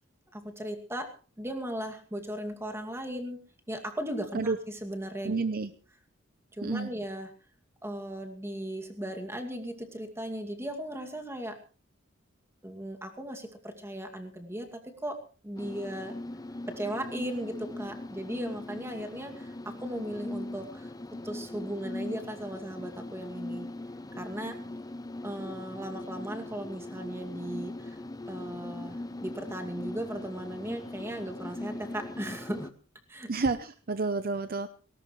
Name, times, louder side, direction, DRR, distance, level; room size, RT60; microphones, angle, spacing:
voice 1, 0.3-3.4 3.7-5.4 6.5-7.3 7.8-11.6 12.6-15.2 15.4-16.1 16.7-20.9 21.2-23.7 24.2-24.6 25.2-28.0 28.3-32.7 33.1-33.3, right 1 dB, 15° right, 4 dB, 2.3 m, -37 dB
voice 2, 5.2-5.7 6.6-6.9 33.3-34.7, right 3 dB, 50° right, 12 dB, 0.7 m, -29 dB
sound 1, 15.6-32.7, left 1 dB, 20° left, 0.7 m, -40 dB
18.5 x 18.0 x 3.2 m, 0.36 s
head